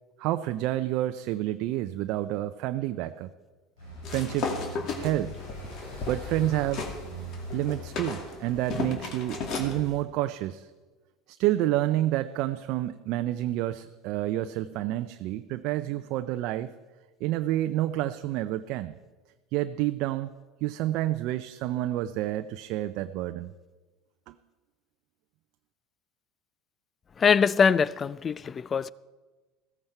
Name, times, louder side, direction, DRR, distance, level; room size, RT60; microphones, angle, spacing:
voice 1, 0.2-3.3 4.1-5.3 6.1-6.9 7.5-10.7 11.3-16.7 17.2-18.9 19.5-20.3 20.6-23.5 24.3-24.4, right 14 dB, 60° right, 0.5 m, -29 dB
sound 1, 3.8-10.0, equal, 85° left, 5.2 m, -42 dB
sound 2, 4.0-7.0 7.3-9.8, left 4 dB, 55° left, 2.4 m, -34 dB
voice 2, 27.2-28.9, left 6 dB, 30° left, 0.4 m, -23 dB
15.5 x 14.0 x 4.5 m
hypercardioid pair, 80°, 0 cm